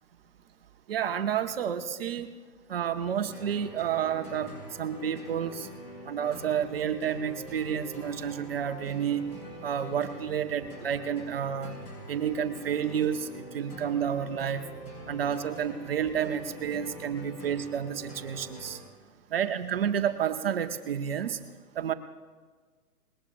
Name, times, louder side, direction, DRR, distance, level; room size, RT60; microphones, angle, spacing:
voice 1, 0.9-2.3 2.7-5.7 6.0-9.2 9.6-11.8 12.1-14.6 15.1-18.8 19.3-21.4 21.7-21.9, right 8 dB, 40° right, 8 dB, 0.6 m, -30 dB
sound 1, 3.0-18.8, equal, 35° left, 5.5 m, -45 dB
20.0 x 18.0 x 2.5 m, 1.4 s
hypercardioid pair, 140°, 47 cm